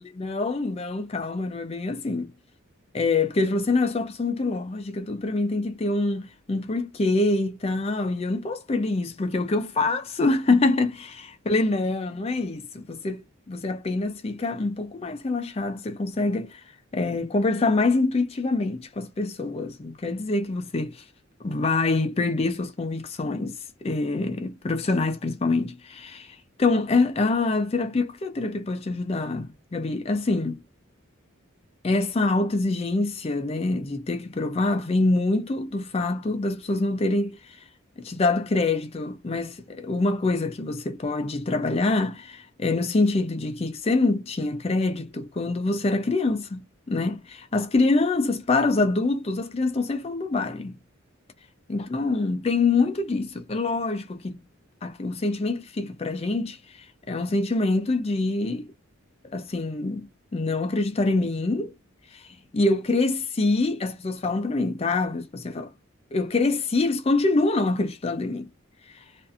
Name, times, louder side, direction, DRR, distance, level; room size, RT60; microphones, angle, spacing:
voice 1, 0.1-2.3 2.9-16.6 16.9-21.0 21.4-26.3 26.6-30.6 31.8-37.4 38.0-50.8 51.7-54.4 54.8-56.6 57.1-58.7 59.3-61.7 62.1-62.2 62.5-65.7 66.1-68.5, left 3 dB, 30° left, 0.4 m, -25 dB
2.5 x 2.4 x 2.4 m
head